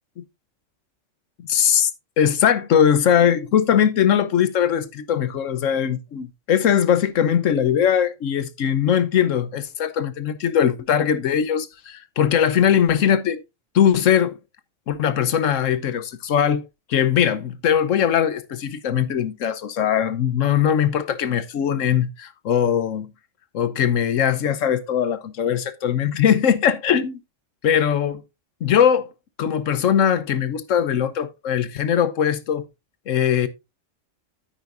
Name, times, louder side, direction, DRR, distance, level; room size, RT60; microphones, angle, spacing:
voice 1, 1.4-13.4 13.7-14.4 14.9-16.6 16.9-23.1 23.5-27.2 27.6-28.2 28.6-29.1 29.4-32.7 33.1-33.5, left 9 dB, 85° left, 1.2 m, -20 dB
9.6 x 8.9 x 2.5 m
omnidirectional pair, 1.3 m